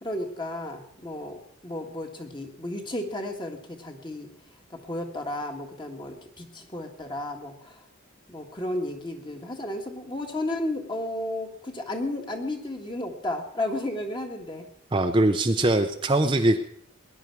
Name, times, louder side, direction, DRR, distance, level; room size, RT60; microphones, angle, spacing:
voice 1, 0.0-4.3 4.7-7.8 8.3-14.7, left 1 dB, 25° left, 4 dB, 1.6 m, -33 dB
voice 2, 14.9-16.6, right 1 dB, 25° right, 6 dB, 0.6 m, -22 dB
19.5 x 10.5 x 4.7 m, 0.66 s
head